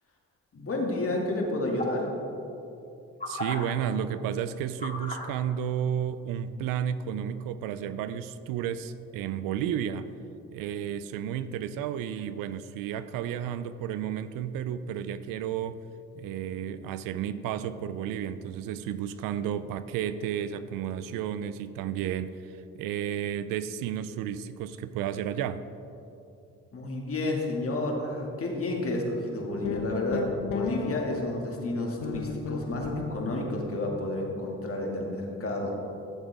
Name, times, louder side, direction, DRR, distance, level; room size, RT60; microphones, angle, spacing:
voice 1, 0.5-2.1 26.7-35.8, left 2 dB, 40° left, 0 dB, 2.3 m, -31 dB
sound 1, 1.8-2.0 3.2-3.5 4.8-5.2 6.2-6.3, left 1 dB, 25° left, 2.5 m, -34 dB
voice 2, 3.3-10.1 10.5-15.8 16.1-25.6, right 9 dB, 75° right, 13 dB, 0.5 m, -32 dB
sound 2, 29.6-31.4 32.0-33.6, left 4 dB, 75° left, 1.1 m, -33 dB
14.5 x 7.3 x 3.5 m, 2.8 s
supercardioid pair, 55°, 34 cm